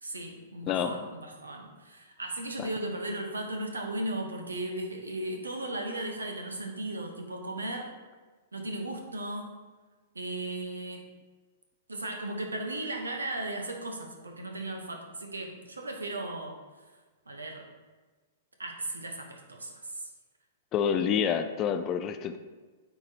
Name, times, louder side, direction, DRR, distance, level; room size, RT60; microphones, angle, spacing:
voice 1, 0.0-7.9 8.5-9.5 10.1-11.1 11.9-16.6 17.3-17.7 18.6-20.1, right 1 dB, 80° right, 3 dB, 0.9 m, -36 dB
voice 2, 20.7-22.4, left 8 dB, 30° left, 9 dB, 0.4 m, -28 dB
8.8 x 4.0 x 2.8 m, 1.3 s
figure-of-eight pair, 105°, 0 cm